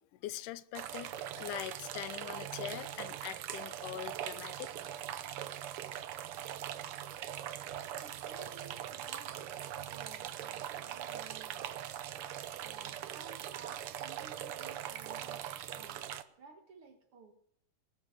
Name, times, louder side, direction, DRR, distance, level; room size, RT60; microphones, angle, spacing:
voice 1, 0.0-4.7, left 14 dB, 80° left, 2.2 m, -43 dB
sound 1, 0.7-16.2, right 11 dB, 85° right, 1.2 m, -41 dB
voice 2, 7.6-11.7 12.2-15.5 15.8-17.3, right 4 dB, 50° right, 2.0 m, -55 dB
19.5 x 11.0 x 6.5 m
omnidirectional pair, 3.6 m